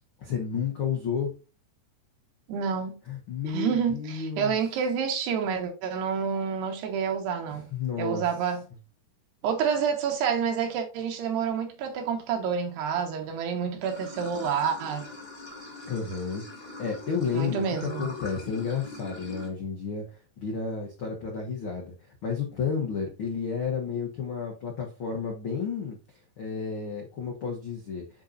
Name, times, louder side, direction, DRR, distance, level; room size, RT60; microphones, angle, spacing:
voice 1, 0.2-1.3 3.1-4.6 7.7-8.2 15.9-16.4 16.8-20.0 20.4-21.9 22.2-26.0 26.4-28.0, left 6 dB, 75° left, 1.2 m, -31 dB
voice 2, 2.5-3.0 3.5-7.7 8.0-8.6 9.4-15.1 17.3-18.1, right 7 dB, 80° right, 3.5 m, -28 dB
Water / Sink (filling or washing), 13.8-19.5, left 2 dB, 15° left, 2.0 m, -42 dB
9.9 x 4.3 x 2.6 m
omnidirectional pair, 4.8 m